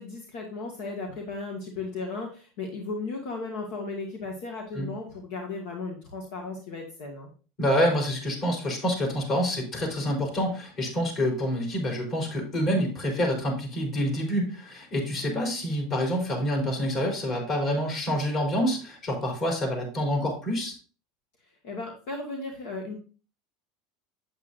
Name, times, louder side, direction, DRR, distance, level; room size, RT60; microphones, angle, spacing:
voice 1, 0.0-7.3 21.6-23.0, left 3 dB, 70° left, 1 dB, 1.8 m, -35 dB
voice 2, 7.6-20.7, equal, 40° left, 0 dB, 4.3 m, -27 dB
8.5 x 8.2 x 2.6 m, 0.37 s
supercardioid pair, 115°, 0 cm